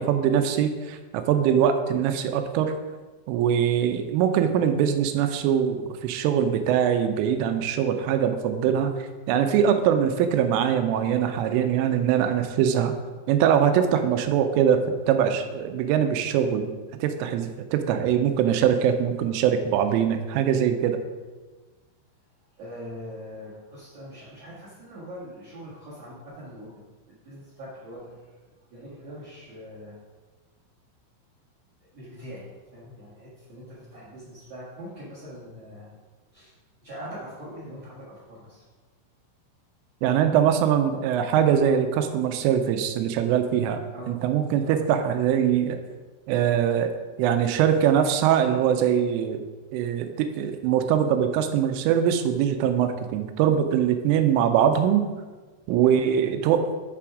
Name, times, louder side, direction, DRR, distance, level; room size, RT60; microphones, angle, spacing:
voice 1, 0.0-2.7 3.3-12.9 13.3-16.7 17.0-21.0 40.0-43.8 44.1-45.8 46.3-46.9 47.2-49.4 49.7-55.1 55.7-56.7, right 9 dB, 85° right, 8 dB, 3.2 m, -22 dB
voice 2, 22.6-26.8 27.1-28.3 28.7-30.0 31.8-35.9 36.3-36.5 36.8-38.6 43.9-44.1 44.6-44.8 55.8-56.1, equal, 50° right, -10 dB, 1.9 m, -42 dB
7.1 x 5.9 x 4.8 m, 1.3 s
omnidirectional pair, 5.7 m